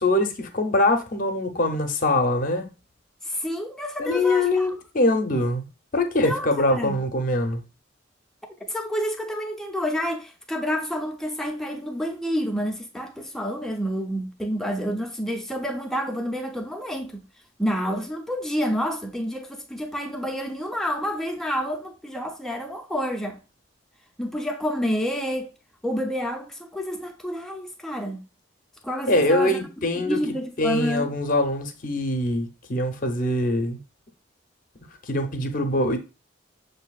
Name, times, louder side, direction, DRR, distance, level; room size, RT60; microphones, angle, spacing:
voice 1, 0.0-2.7 4.0-5.7 5.9-7.6 29.1-30.2 30.6-33.8 35.0-36.0, left 1 dB, 45° left, 0.7 m, -23 dB
voice 2, 3.2-4.7 6.2-7.0 8.6-17.3 17.6-23.4 24.2-25.5 25.8-28.3 28.8-29.6 30.0-31.1, equal, ahead, 0.5 m, -29 dB
6.6 x 2.7 x 2.3 m
head